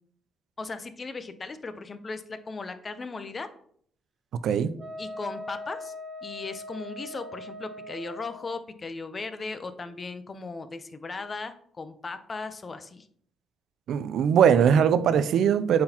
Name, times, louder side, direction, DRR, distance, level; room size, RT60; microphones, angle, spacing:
voice 1, 0.6-3.5 5.0-5.9 6.2-13.1, left 3 dB, 35° left, 0.6 m, -37 dB
Wind instrument woodwind instrument, 4.8-8.5, left 1 dB, 55° right, 1.1 m, -40 dB
voice 2, 13.9-15.8, right 8 dB, 75° right, 0.4 m, -21 dB
8.5 x 3.9 x 2.9 m
cardioid pair, 90°, 0 cm